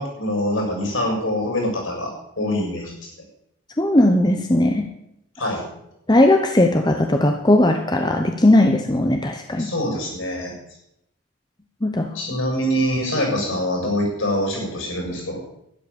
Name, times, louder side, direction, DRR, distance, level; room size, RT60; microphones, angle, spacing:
voice 1, 0.0-2.1 2.4-2.9 5.4-5.6 9.6-10.5 12.1-15.4, equal, 65° left, 0 dB, 7.4 m, -24 dB
voice 2, 3.8-4.9 6.1-9.7 11.8-12.1, left 1 dB, 20° left, 5 dB, 0.8 m, -18 dB
12.0 x 11.5 x 7.0 m, 0.80 s
head